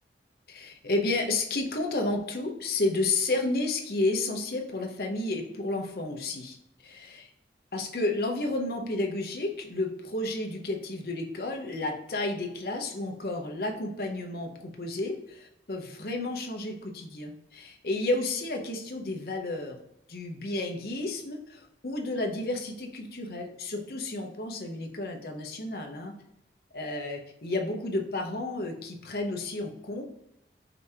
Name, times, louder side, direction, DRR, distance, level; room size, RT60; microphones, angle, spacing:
voice 1, 0.5-7.3 7.7-19.8 20.1-26.1 26.7-30.1, left 2 dB, 55° left, 2 dB, 0.8 m, -31 dB
5.2 x 2.8 x 3.4 m, 0.82 s
head